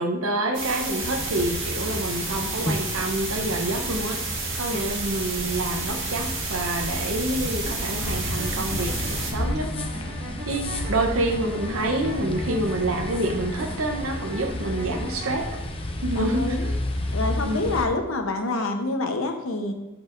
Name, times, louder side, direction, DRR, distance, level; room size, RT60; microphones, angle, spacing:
voice 1, 0.0-9.7 10.5-15.5 16.0-16.7 17.4-17.7, right 1 dB, 85° right, 3 dB, 0.8 m, -27 dB
sound 1, 0.5-9.3, right 4 dB, 60° right, 1.6 m, -31 dB
sound 2, 1.0-17.9, left 1 dB, 25° left, 0.7 m, -32 dB
sound 3, 7.6-15.6, right 1 dB, 45° right, 2.0 m, -39 dB
voice 2, 10.2-10.5 14.4-14.6 16.1-16.7 17.1-19.7, left 2 dB, 80° left, 5 dB, 0.9 m, -27 dB
12.5 x 4.7 x 2.6 m, 1.0 s
head